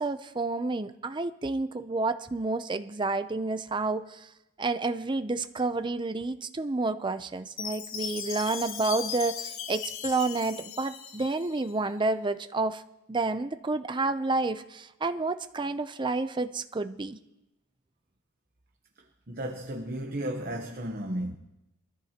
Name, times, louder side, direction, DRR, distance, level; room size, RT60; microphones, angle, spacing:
voice 1, 0.0-4.3 4.6-12.8 13.1-17.2, right 3 dB, 20° right, 0.5 m, -30 dB
Chime, 7.6-11.7, left 8 dB, 65° left, 0.8 m, -38 dB
voice 2, 19.3-21.3, right 1 dB, 45° right, 1.0 m, -34 dB
23.0 x 14.0 x 2.9 m
head